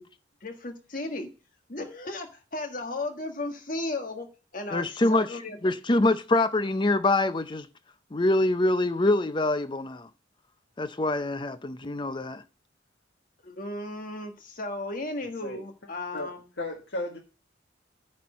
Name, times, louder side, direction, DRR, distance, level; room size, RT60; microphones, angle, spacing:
voice 1, 0.4-1.3 1.7-4.3 4.5-5.6 13.4-16.4, left 2 dB, 45° left, 1.6 m, -35 dB
voice 2, 4.7-7.7 8.1-10.1 10.8-12.4, left 2 dB, 25° left, 0.6 m, -25 dB
voice 3, 16.1-17.2, left 2 dB, 70° left, 1.6 m, -35 dB
9.5 x 4.4 x 7.4 m
head